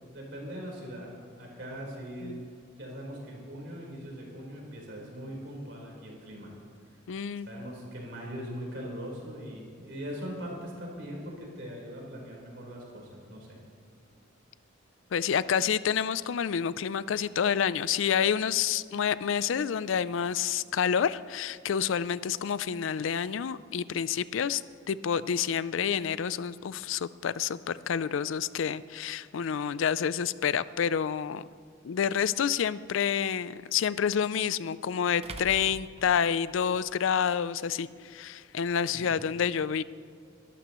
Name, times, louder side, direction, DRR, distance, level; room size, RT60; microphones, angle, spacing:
voice 1, 0.1-2.4 2.8-6.5 7.4-13.6 38.9-39.2, equal, 65° right, -2 dB, 4.2 m, -41 dB
voice 2, 7.1-7.5 15.1-24.6 24.9-31.5 31.8-39.8, left 7 dB, 75° left, 17 dB, 0.4 m, -28 dB
sound 1, 31.4-31.5 34.1-34.2 35.2-36.8, right 3 dB, 30° right, 0.6 m, -44 dB
22.0 x 13.0 x 3.1 m, 2.2 s
head